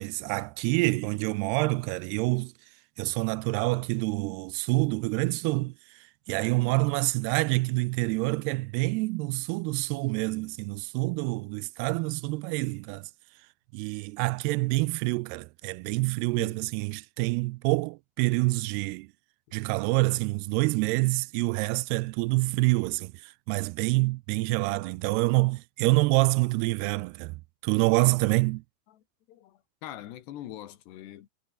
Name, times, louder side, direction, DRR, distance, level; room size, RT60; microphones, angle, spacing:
voice 1, 0.0-2.5 3.0-5.7 6.3-13.1 13.7-19.1 19.5-27.3 27.6-28.6, right 23 dB, 85° right, 2.5 m, -27 dB
voice 2, 24.7-25.1 28.9-31.3, left 12 dB, 85° left, 3.8 m, -44 dB
omnidirectional pair, 4.7 m